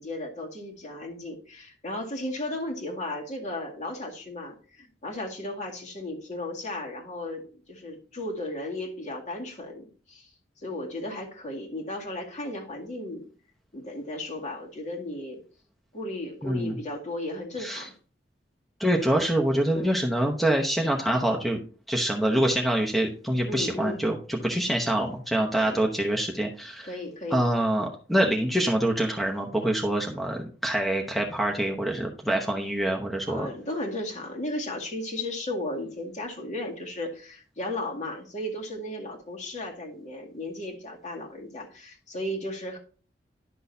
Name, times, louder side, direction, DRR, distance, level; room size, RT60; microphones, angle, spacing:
voice 1, 0.0-10.3 10.6-13.2 13.7-15.4 15.9-17.9 19.7-19.9 23.5-24.0 25.6-25.9 26.8-27.5 33.3-42.8, left 1 dB, 40° left, 1 dB, 2.1 m, -35 dB
voice 2, 16.4-16.8 17.6-17.9 18.8-21.6 21.9-26.9 27.3-33.5, right 1 dB, ahead, 1 dB, 0.9 m, -25 dB
11.0 x 6.2 x 2.7 m, 0.39 s
head